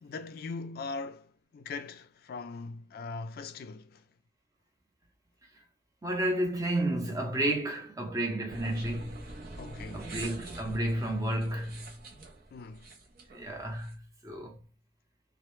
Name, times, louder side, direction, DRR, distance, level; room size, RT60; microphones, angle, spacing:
voice 1, 0.0-4.0 9.6-10.1 12.5-12.9, left 4 dB, 55° left, 0.3 m, -41 dB
voice 2, 6.0-9.3 9.9-11.9 13.3-14.6, right 1 dB, 20° right, 0.6 m, -31 dB
sound 1, 8.5-13.9, right 2 dB, 55° right, 0.6 m, -45 dB
2.0 x 2.0 x 3.0 m
head